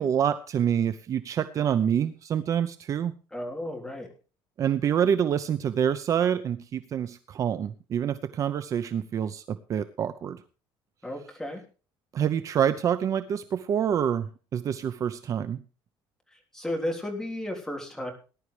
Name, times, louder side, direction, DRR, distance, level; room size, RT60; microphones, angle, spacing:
voice 1, 0.0-3.1 4.6-10.4 12.1-15.6, right 8 dB, 40° right, 12 dB, 0.7 m, -27 dB
voice 2, 3.3-4.1 11.0-11.6 16.3-18.1, left 1 dB, 5° left, 1 dB, 3.6 m, -33 dB
19.5 x 11.0 x 3.3 m, 0.36 s
cardioid pair, 160°, 9 cm